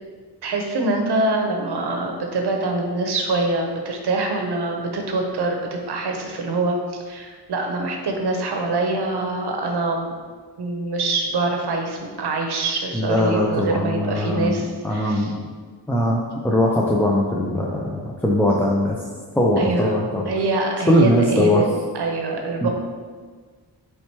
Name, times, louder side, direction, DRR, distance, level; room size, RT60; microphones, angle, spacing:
voice 1, 0.4-10.1 10.6-15.3 19.6-19.9 20.2-21.7 21.9-22.7, right 2 dB, 70° right, 2 dB, 0.8 m, -24 dB
voice 2, 12.9-15.5 15.9-19.0 19.3-20.3 20.9-21.6 22.6-22.7, left 1 dB, 5° left, -4 dB, 0.5 m, -20 dB
3.3 x 2.8 x 4.5 m, 1.5 s
cardioid pair, 45°, 41 cm